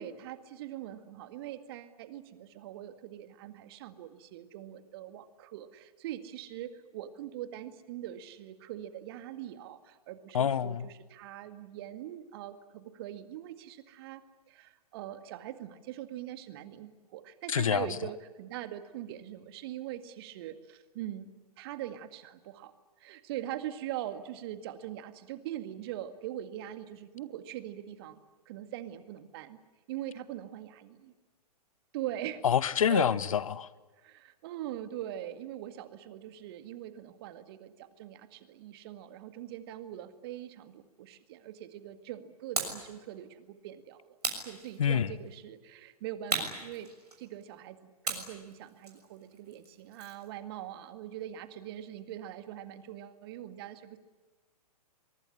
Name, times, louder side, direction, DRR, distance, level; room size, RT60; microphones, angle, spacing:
voice 1, 0.0-14.2 14.5-22.7 23.0-29.6 29.9-31.1 31.9-32.4 32.9-33.1 34.0-44.2 44.5-46.9 47.2-54.0, right 12 dB, 40° right, 2.0 m, -42 dB
voice 2, 10.3-10.9 17.5-17.9 32.4-33.7 44.8-45.1, left 8 dB, 55° left, 1.1 m, -26 dB
sound 1, 42.6-42.9 44.2-45.1 46.3-47.4 48.0-50.3, right 3 dB, 75° right, 6.6 m, -36 dB
24.0 x 22.5 x 10.0 m
figure-of-eight pair, 115°, 20 cm